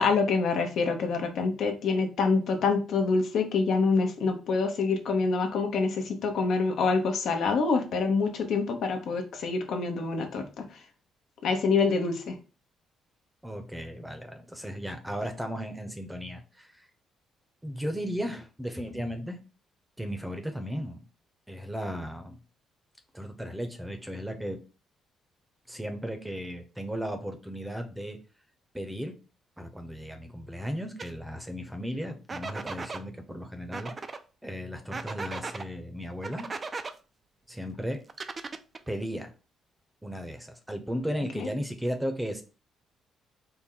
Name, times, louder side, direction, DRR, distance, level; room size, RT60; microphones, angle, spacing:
voice 1, 0.0-10.4 11.4-12.3 41.4-41.5, left 4 dB, 70° left, 5 dB, 0.8 m, -26 dB
voice 2, 13.4-16.9 17.6-19.4 20.0-21.0 21.5-22.4 23.1-24.6 25.7-28.2 28.7-29.1 29.6-33.9 34.4-36.5 37.5-38.0 38.9-39.3 40.0-42.4, equal, 5° right, 6 dB, 0.7 m, -35 dB
sound 1, 31.0-31.1 32.3-33.0 33.7-34.2 34.9-35.7 36.2-36.9 38.1-38.9, right 4 dB, 35° right, 0.4 m, -37 dB
4.4 x 2.1 x 3.8 m, 0.34 s
cardioid pair, 90°, 0 cm